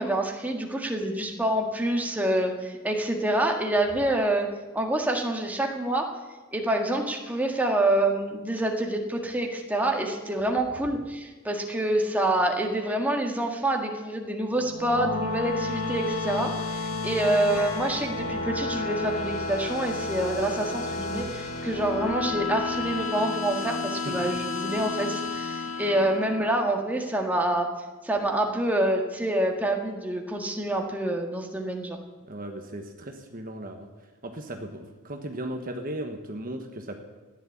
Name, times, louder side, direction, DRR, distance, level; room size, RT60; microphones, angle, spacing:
voice 1, 0.0-4.5 4.7-6.1 6.5-27.7 28.0-32.0, right 1 dB, 5° right, 1 dB, 1.7 m, -27 dB
sound 1, 14.5-26.9, left 3 dB, 80° left, 1.7 m, -32 dB
voice 2, 24.0-24.3 32.3-33.9 34.2-37.0, right 1 dB, 40° right, 4 dB, 1.3 m, -36 dB
15.0 x 11.0 x 8.5 m, 1.3 s
head